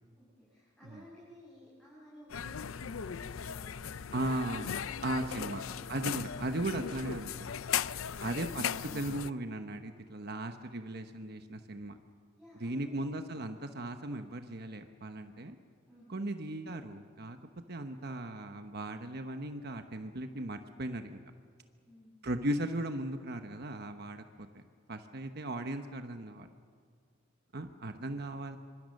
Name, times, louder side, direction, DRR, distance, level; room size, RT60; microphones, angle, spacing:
voice 1, 0.2-4.2 4.9-6.0 12.4-13.0 15.9-16.1 21.8-22.1, equal, 5° left, -8 dB, 6.6 m, -55 dB
sound 1, 2.3-9.3, left 8 dB, 90° left, 0.6 m, -37 dB
voice 2, 4.1-5.6 5.9-7.5 8.2-12.0 12.6-15.6 16.1-17.4 17.7-21.2 22.2-24.6 24.9-26.5 27.5-28.6, right 1 dB, 55° right, 7 dB, 1.1 m, -37 dB
26.0 x 25.0 x 6.6 m, 2.1 s
head